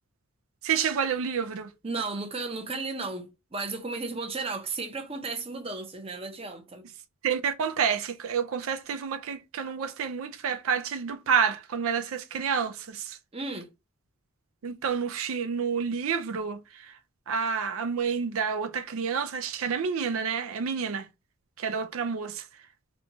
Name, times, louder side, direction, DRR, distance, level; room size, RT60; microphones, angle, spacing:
voice 1, 0.6-1.7 7.2-13.2 14.6-16.9 17.3-21.1 21.6-22.4, right 6 dB, 85° right, 0.4 m, -29 dB
voice 2, 1.8-6.9 13.3-13.7, right 3 dB, 25° right, 0.6 m, -34 dB
4.3 x 2.2 x 2.7 m
head